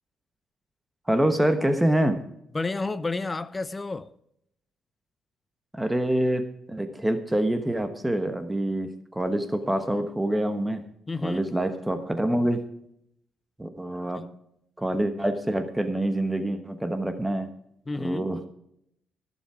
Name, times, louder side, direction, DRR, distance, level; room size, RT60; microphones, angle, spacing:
voice 1, 1.1-2.2 5.7-6.4 6.7-10.8 11.2-12.6 13.6-14.2 14.8-17.5 18.0-18.5, right 1 dB, 10° right, 8 dB, 1.2 m, -26 dB
voice 2, 2.5-4.1 11.1-11.5 17.9-18.3, left 3 dB, 20° left, 16 dB, 0.6 m, -30 dB
15.5 x 7.2 x 4.9 m, 0.74 s
cardioid pair, 90°, 0 cm